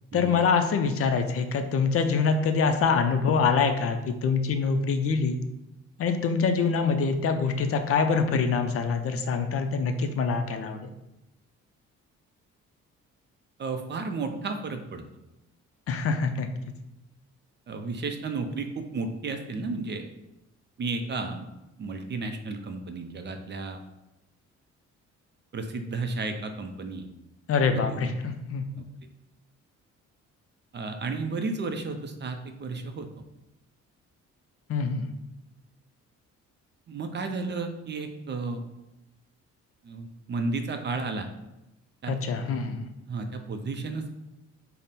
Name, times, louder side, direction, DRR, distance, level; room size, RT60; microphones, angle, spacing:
voice 1, 0.1-5.4 6.0-10.9 15.9-16.5 27.5-28.6 34.7-35.1 42.1-42.9, left 5 dB, 50° left, 6 dB, 0.4 m, -25 dB
voice 2, 13.6-15.0 17.7-20.0 20.8-21.5 21.8-23.8 25.5-27.1 27.7-28.1 30.7-33.1 36.9-38.6 39.8-41.3 42.0-42.2 43.1-44.2, right 3 dB, 35° right, 6 dB, 0.4 m, -33 dB
3.6 x 2.0 x 4.1 m, 0.92 s
cardioid pair, 90°, 30 cm